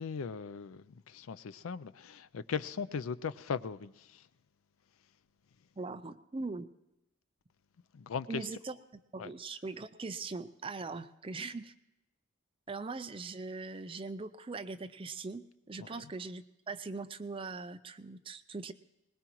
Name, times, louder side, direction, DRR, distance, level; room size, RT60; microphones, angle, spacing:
voice 1, 0.0-4.3 7.9-8.5 9.2-9.3 15.8-16.1, left 6 dB, 80° left, 0.4 m, -39 dB
voice 2, 5.8-6.7 8.3-8.8 9.1-11.7 12.7-18.7, right 3 dB, 25° right, 0.5 m, -41 dB
21.0 x 19.5 x 3.1 m
head